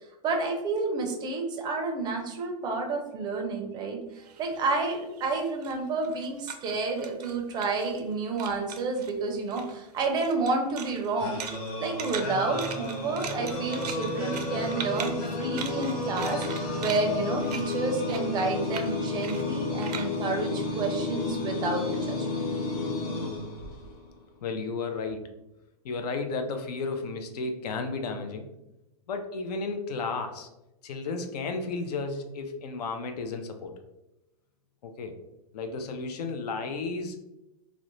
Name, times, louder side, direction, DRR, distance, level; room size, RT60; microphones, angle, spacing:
voice 1, 0.2-11.4 11.8-22.5, right 3 dB, 20° right, 3 dB, 0.4 m, -30 dB
sound 1, 4.2-8.1 8.4-9.1 9.5-21.3, right 7 dB, 85° right, 0.4 m, -41 dB
sound 2, 11.2-24.1, left 3 dB, 60° left, 1.0 m, -32 dB
voice 2, 24.4-25.3 25.8-28.4 29.1-30.5 30.8-33.7 34.8-35.2 35.5-37.2, left 4 dB, 80° left, 6 dB, 0.5 m, -33 dB
2.4 x 2.1 x 2.9 m, 0.93 s
hypercardioid pair, 135°, 20 cm